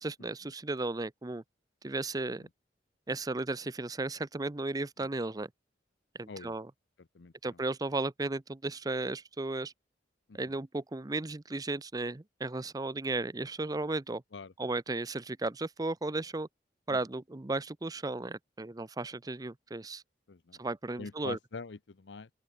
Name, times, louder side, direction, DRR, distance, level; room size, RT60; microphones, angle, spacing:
voice 1, 0.0-1.4 1.8-2.5 3.1-5.5 6.2-6.7 7.4-9.7 10.3-14.2 14.6-16.5 16.9-20.0 20.6-21.4, right 2 dB, 20° right, 0.6 m, -35 dB
voice 2, 7.1-7.6 10.3-10.6 14.3-14.5 16.9-17.0 20.3-20.6 21.0-22.3, left 4 dB, 80° left, 0.7 m, -44 dB
open air
head